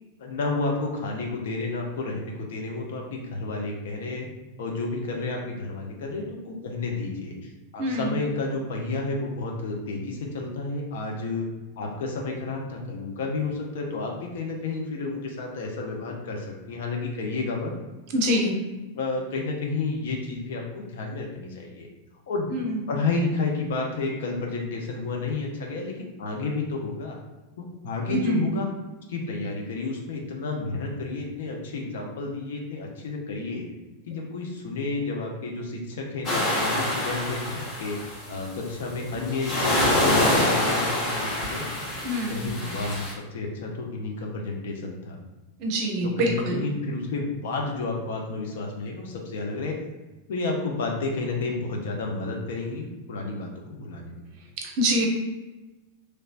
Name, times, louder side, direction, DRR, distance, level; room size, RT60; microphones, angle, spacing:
voice 1, 0.2-4.3 4.6-11.5 11.8-17.7 18.3-18.5 18.9-21.9 22.3-22.5 22.9-27.2 27.6-28.7 29.1-33.7 34.1-41.7 42.1-45.2 46.0-49.8 50.3-54.2, left 3 dB, 55° left, 0 dB, 0.7 m, -31 dB
voice 2, 7.8-8.2 18.1-18.5 22.5-22.8 28.1-28.5 42.0-42.4 45.6-46.6 54.8-55.1, equal, 45° right, 1 dB, 0.7 m, -25 dB
sound 1, 36.2-38.4 39.0-43.1, left 1 dB, 35° left, 1.0 m, -25 dB
3.1 x 3.1 x 2.5 m, 1.1 s
figure-of-eight pair, 90°, 0 cm